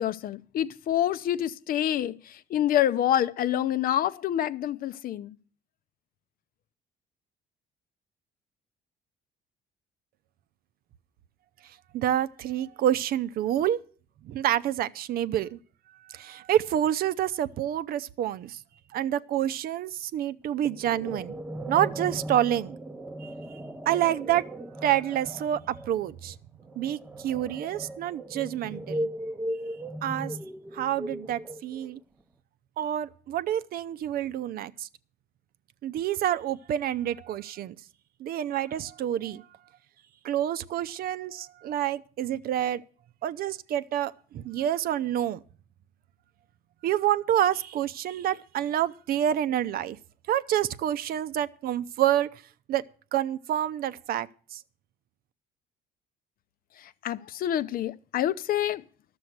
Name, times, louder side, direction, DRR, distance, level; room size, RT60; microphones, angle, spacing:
voice 1, 0.0-5.3 57.0-58.8, left 11 dB, 60° left, 0.6 m, -27 dB
voice 2, 11.9-13.8 14.2-15.6 16.1-18.6 18.9-21.3 21.7-22.8 23.2-23.3 23.9-24.4 24.8-26.4 26.8-29.1 30.0-30.4 30.7-32.0 32.8-34.9 35.8-37.8 38.2-39.5 40.2-42.8 43.2-45.4 46.8-50.0 50.3-52.3 52.7-52.8 53.1-54.6, right 11 dB, 60° right, 0.6 m, -28 dB
sound 1, 20.6-32.0, right 1 dB, 10° right, 0.7 m, -37 dB
12.0 x 7.0 x 7.9 m
cardioid pair, 110°, 17 cm